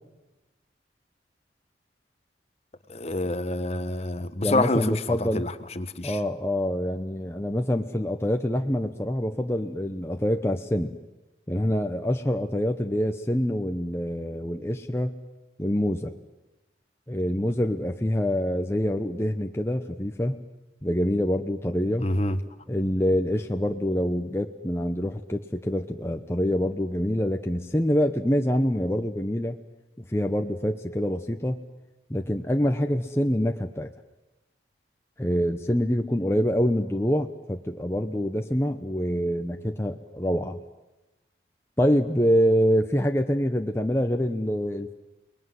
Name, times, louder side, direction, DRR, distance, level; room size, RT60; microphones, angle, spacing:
voice 1, 2.9-6.2 22.0-22.4, left 2 dB, 35° left, 11 dB, 1.2 m, -27 dB
voice 2, 4.4-5.5 6.0-10.9 11.5-15.2 15.6-16.1 17.1-20.4 20.8-22.1 22.7-29.6 30.0-31.6 32.1-33.9 35.2-40.6 41.8-44.9, equal, 15° left, 4 dB, 0.9 m, -26 dB
29.5 x 20.5 x 9.6 m, 1.1 s
head